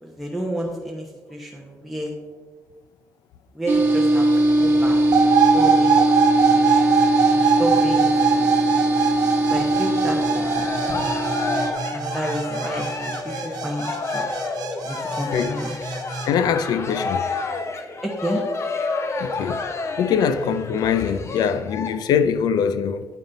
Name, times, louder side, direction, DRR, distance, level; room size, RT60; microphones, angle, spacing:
voice 1, 0.0-2.1 3.5-4.3 4.6-6.0 6.5-6.9 7.2-8.8 9.5-10.5 11.9-14.3 14.8-15.7 18.0-18.4, right 1 dB, ahead, 1.0 m, -30 dB
sound 1, 3.7-11.7, right 1 dB, 35° right, 1.2 m, -20 dB
sound 2, 5.1-16.3, right 7 dB, 70° right, 1.1 m, -22 dB
Cheering, 10.1-21.9, left 4 dB, 45° left, 0.8 m, -30 dB
voice 2, 16.3-17.2 19.2-19.6 20.0-23.1, left 7 dB, 75° left, 0.5 m, -22 dB
9.1 x 5.2 x 3.9 m
cardioid pair, 95°, 7 cm